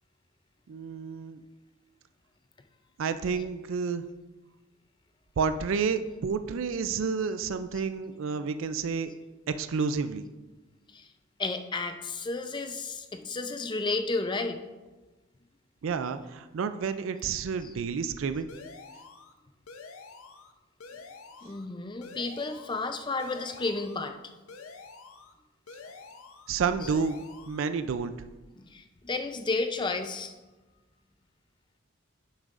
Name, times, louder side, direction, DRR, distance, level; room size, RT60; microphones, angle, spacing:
voice 1, 0.7-1.4 3.0-4.1 5.4-9.2 9.5-10.3 15.8-18.5 26.5-27.2 27.5-28.2, right 5 dB, 70° right, 11 dB, 0.4 m, -30 dB
voice 2, 11.4-14.6 17.6-17.8 21.4-24.2 26.8-26.9 28.5-30.3, left 3 dB, 20° left, 6 dB, 0.5 m, -32 dB
sound 1, 18.5-19.3 19.7-20.5 20.8-21.7 22.0-22.9 23.2-24.0 24.5-25.3 25.7-26.5 26.8-27.7, left 4 dB, 85° left, 0.7 m, -48 dB
10.0 x 7.2 x 2.5 m, 1.2 s
head